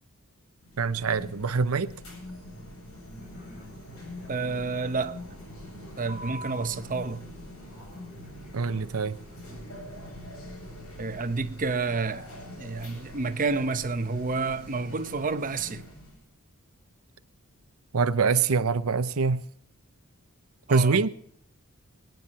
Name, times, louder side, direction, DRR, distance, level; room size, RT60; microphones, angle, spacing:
sound 1, 0.6-16.2, left 1 dB, 80° left, 7.7 m, -44 dB
voice 1, 0.8-1.9 8.5-9.2 17.9-19.4 20.7-21.1, right 5 dB, 80° right, 0.7 m, -24 dB
Fixed-wing aircraft airplane, 3.2-9.7, equal, 35° left, 7.8 m, -53 dB
voice 2, 4.3-5.2 6.0-7.3 11.0-12.3 12.6-15.8 20.7-21.0, right 4 dB, 40° right, 0.8 m, -29 dB
23.5 x 9.4 x 4.2 m
head